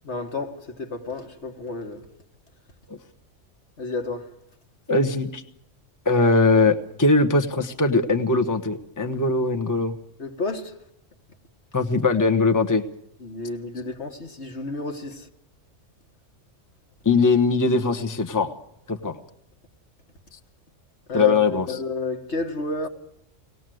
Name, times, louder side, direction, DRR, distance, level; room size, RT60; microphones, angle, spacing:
voice 1, 0.0-2.0 3.8-4.3 10.2-10.8 13.2-15.3 21.1-22.9, left 3 dB, 60° left, 2.0 m, -31 dB
voice 2, 4.9-5.4 6.0-10.0 11.7-12.8 17.0-18.5 18.9-19.2 21.1-21.8, left 3 dB, 15° left, 1.2 m, -21 dB
24.5 x 19.0 x 7.8 m
omnidirectional pair, 1.3 m